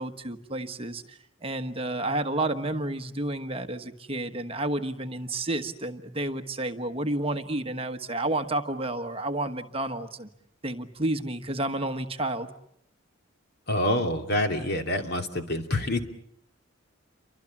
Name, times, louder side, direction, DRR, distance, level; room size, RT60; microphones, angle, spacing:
voice 1, 0.0-10.3 10.6-12.5, right 2 dB, 30° right, 7 dB, 1.3 m, -31 dB
voice 2, 13.7-16.0, left 1 dB, 55° left, 5 dB, 2.6 m, -26 dB
29.5 x 24.5 x 7.3 m, 0.70 s
head